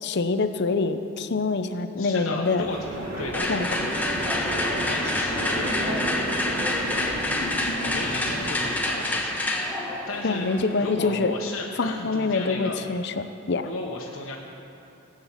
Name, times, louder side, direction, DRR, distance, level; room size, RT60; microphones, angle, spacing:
voice 1, 0.0-2.7 3.5-3.7 10.2-11.3 11.8-13.7, left 3 dB, 60° left, 9 dB, 0.7 m, -25 dB
voice 2, 2.0-2.9 3.2-3.5 4.2-6.1 7.0-9.4 10.1-12.8 13.6-14.4, left 3 dB, 85° left, -3 dB, 1.2 m, -35 dB
sound 1, 2.6-8.7, equal, 40° right, 4.0 m, -32 dB
sound 2, 3.3-11.3, left 1 dB, 10° left, 1.4 m, -28 dB
17.0 x 9.0 x 7.3 m, 2.8 s
head